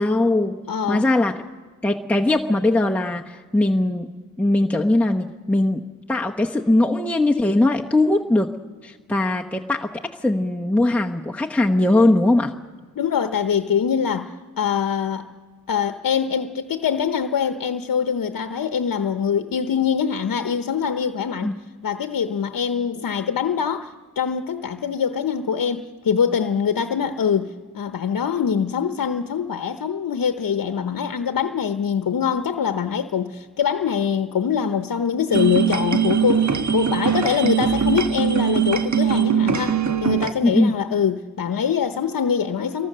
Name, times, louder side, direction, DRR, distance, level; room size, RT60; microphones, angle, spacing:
voice 1, 0.0-1.4 1.8-4.1 4.4-5.8 6.1-8.5 8.8-9.9 10.2-12.5 21.4-21.5 40.4-40.7, left 2 dB, 5° left, 0 dB, 0.9 m, -20 dB
voice 2, 0.7-1.0 13.0-15.3 15.7-21.5 21.8-42.9, left 7 dB, 80° left, 8 dB, 0.9 m, -23 dB
sound 1, 35.3-40.3, right 8 dB, 55° right, 1.2 m, -21 dB
26.5 x 23.0 x 6.7 m, 1.4 s
wide cardioid pair, 90°, 34 cm